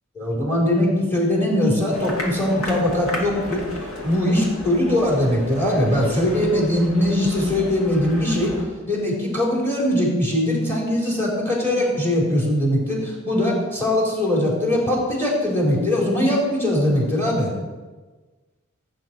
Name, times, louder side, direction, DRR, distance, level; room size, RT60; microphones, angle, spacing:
voice 1, 0.2-3.6 4.0-8.5 8.9-17.5, left 1 dB, 10° left, -3 dB, 4.1 m, -21 dB
sound 1, 1.9-8.6, left 1 dB, 75° left, 2.7 m, -33 dB
16.5 x 8.8 x 4.7 m, 1.3 s
head